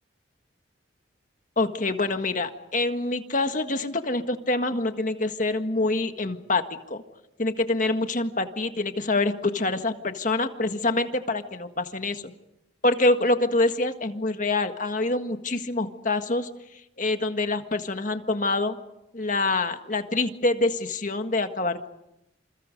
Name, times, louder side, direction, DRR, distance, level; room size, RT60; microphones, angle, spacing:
voice 1, 1.6-6.6 6.9-7.0 7.4-12.3 12.8-16.5 17.0-18.8 19.1-21.9, left 2 dB, 40° left, 7 dB, 1.7 m, -26 dB
28.5 x 28.0 x 5.3 m, 0.86 s
head